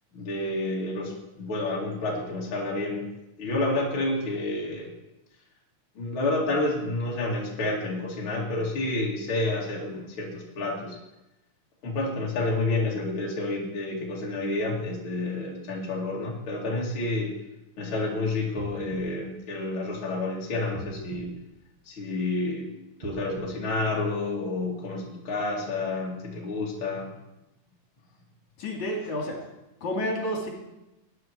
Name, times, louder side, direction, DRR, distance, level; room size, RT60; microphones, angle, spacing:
voice 1, 0.1-3.1 3.4-4.9 5.9-11.0 11.8-17.3 17.8-21.3 21.9-22.7 23.0-27.1, left 2 dB, 40° left, -3 dB, 3.1 m, -29 dB
sound 1, 18.5-20.2 20.7-22.3 22.9-24.6 25.2-25.3, right 2 dB, 55° right, 3.3 m, -44 dB
voice 2, 28.6-29.4 29.8-30.5, left 1 dB, 65° left, -1 dB, 4.0 m, -30 dB
21.0 x 9.8 x 4.6 m, 0.94 s
omnidirectional pair, 3.7 m